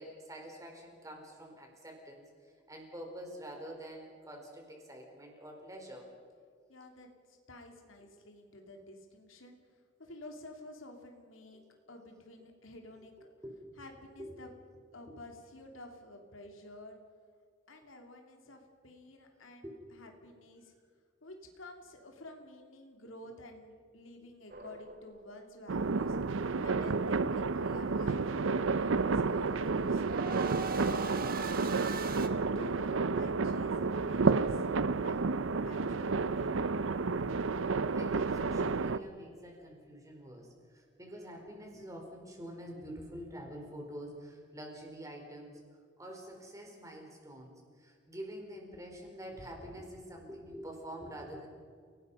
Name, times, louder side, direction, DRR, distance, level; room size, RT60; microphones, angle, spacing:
voice 1, 0.0-6.1 8.0-8.1 11.5-11.7 13.4-13.7 14.2-14.3 15.1-15.2 19.6-19.8 37.9-45.6 46.0-51.5, equal, 15° right, 1 dB, 4.6 m, -47 dB
voice 2, 6.7-9.6 10.0-11.6 11.9-13.3 13.8-14.5 14.9-17.0 17.7-19.6 19.9-20.7 21.2-26.2 26.6-30.0 30.5-31.3 32.5-35.3 35.7-37.1, left 1 dB, 90° left, 3 dB, 2.9 m, -51 dB
sound 1, 24.5-25.4 29.1-32.3, right 4 dB, 45° right, 1.5 m, -41 dB
sound 2, 25.7-39.0, right 4 dB, 80° right, 0.6 m, -31 dB
29.5 x 19.0 x 5.6 m, 2.1 s
head